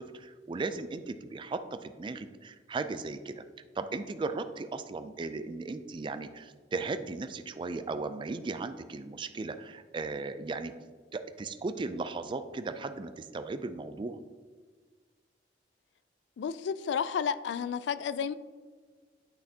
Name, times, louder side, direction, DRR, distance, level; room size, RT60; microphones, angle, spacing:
voice 1, 0.0-3.4 3.8-10.7 11.1-14.2, right 3 dB, 30° right, 10 dB, 0.3 m, -36 dB
voice 2, 16.4-18.3, left 7 dB, 80° left, 15 dB, 0.3 m, -31 dB
8.6 x 5.9 x 2.8 m, 1.5 s
head